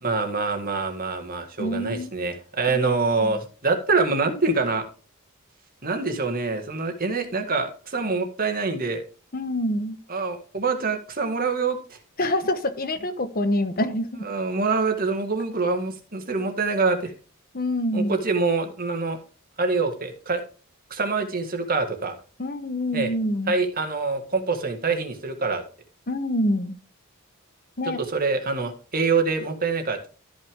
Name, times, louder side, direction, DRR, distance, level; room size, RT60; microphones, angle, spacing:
voice 1, 0.0-4.8 5.8-9.0 10.1-11.8 14.2-17.1 17.9-19.2 19.6-20.4 20.9-22.2 22.9-23.1 23.5-25.6 28.1-30.1, right 4 dB, 40° right, 5 dB, 2.0 m, -25 dB
voice 2, 1.6-2.1 2.7-2.8 3.2-3.3 9.3-10.0 12.2-14.3 17.5-18.2 22.4-23.5 26.1-26.8 27.8-28.0, left 1 dB, 45° left, 9 dB, 1.1 m, -26 dB
13.5 x 6.0 x 3.7 m, 0.36 s
head